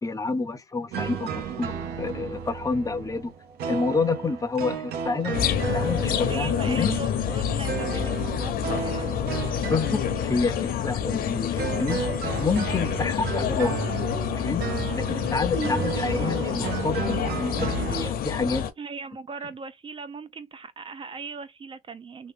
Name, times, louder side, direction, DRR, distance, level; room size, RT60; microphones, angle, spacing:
voice 1, 0.0-3.3 3.7-5.4 5.7-7.0 9.7-12.0 12.4-13.8 14.3-14.6 14.9-18.6, left 4 dB, 20° left, 0.6 m, -28 dB
sound 1, 0.9-18.1, right 7 dB, 70° right, 0.9 m, -33 dB
sound 2, 5.3-18.7, left 8 dB, 60° left, 0.7 m, -28 dB
voice 2, 6.2-9.1 15.5-15.8 18.8-22.3, right 4 dB, 30° right, 0.4 m, -39 dB
3.0 x 2.2 x 3.3 m
cardioid pair, 110°, 17 cm